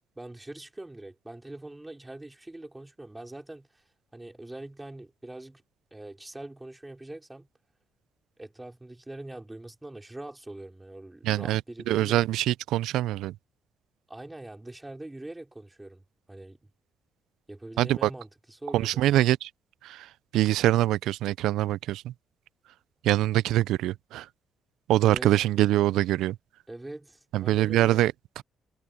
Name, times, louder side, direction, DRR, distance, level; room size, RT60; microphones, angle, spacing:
voice 1, 0.2-3.8 4.1-5.6 5.9-7.5 8.4-12.2 14.1-16.6 17.5-19.0 25.0-25.3 26.7-28.0, right 2 dB, 10° right, 4.7 m, -43 dB
voice 2, 11.2-11.6 11.9-13.4 17.8-18.1 18.7-19.5 19.8-22.1 23.0-24.3 24.9-26.4 27.3-28.4, right 14 dB, 90° right, 0.4 m, -24 dB
cardioid pair, 90°, 0 cm